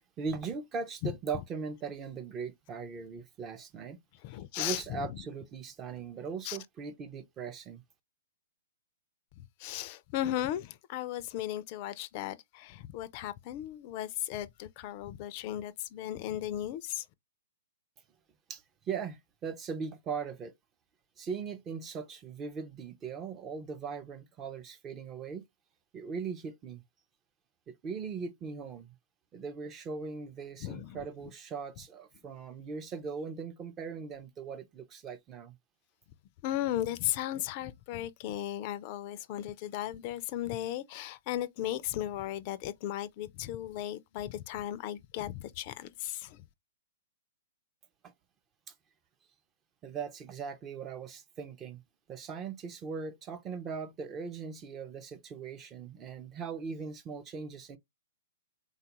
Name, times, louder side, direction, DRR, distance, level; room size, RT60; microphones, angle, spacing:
voice 1, 0.2-4.0 4.6-7.8 18.5-18.6 18.9-20.5 21.2-25.4 25.9-26.8 27.7-28.9 29.3-35.6 48.0-48.1 49.8-51.8 52.1-57.8, right 5 dB, 25° right, 0.4 m, -39 dB
voice 2, 4.2-5.2 6.4-6.6 9.4-17.0 30.6-31.0 36.4-46.4, left 13 dB, 40° left, 0.3 m, -36 dB
3.4 x 2.3 x 2.9 m
hypercardioid pair, 135°, 0 cm